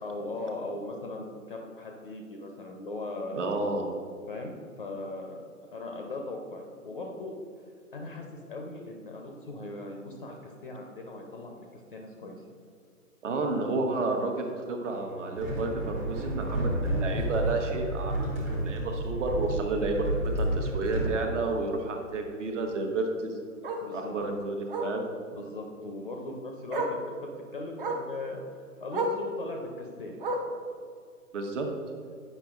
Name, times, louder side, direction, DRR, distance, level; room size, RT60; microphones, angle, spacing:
voice 1, 0.0-3.4 4.3-7.4 7.9-11.7 11.9-12.4 23.8-24.2 25.3-30.1, left 2 dB, 35° left, 2 dB, 0.5 m, -39 dB
voice 2, 3.3-3.8 13.2-23.3 23.9-25.1 31.3-31.7, right 3 dB, 55° right, 3 dB, 1.0 m, -31 dB
Bowed string instrument, 14.8-19.1, right 3 dB, 75° right, 1.3 m, -46 dB
sound 1, 15.4-21.2, right 1 dB, 5° right, 0.7 m, -30 dB
Bark, 17.2-17.4 17.8-17.9 18.2-18.3 18.6-18.7 20.1-20.2 22.7-22.8 23.6-23.9 24.7-25.0 26.2-26.3 26.7-27.0 27.8-28.1 28.9-29.2 30.2-30.6 31.6-31.7, right 1 dB, 40° right, 0.6 m, -32 dB
8.7 x 5.4 x 2.4 m, 2.2 s
hypercardioid pair, 150°, 45 cm